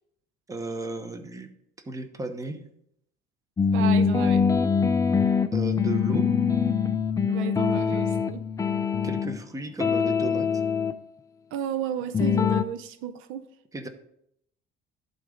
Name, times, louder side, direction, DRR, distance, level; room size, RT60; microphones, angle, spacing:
voice 1, 0.5-1.5 1.9-2.6 5.5-6.3 9.0-10.5 13.7-13.9, right 3 dB, 15° right, 8 dB, 0.8 m, -34 dB
sound 1, 3.6-9.4 9.8-10.9 12.1-12.6, left 6 dB, 15° left, 0.3 m, -23 dB
voice 2, 3.7-4.4 7.3-8.4 11.5-13.5, right 9 dB, 75° right, 12 dB, 0.6 m, -32 dB
11.5 x 3.9 x 5.0 m, 0.74 s
cardioid pair, 125°, 21 cm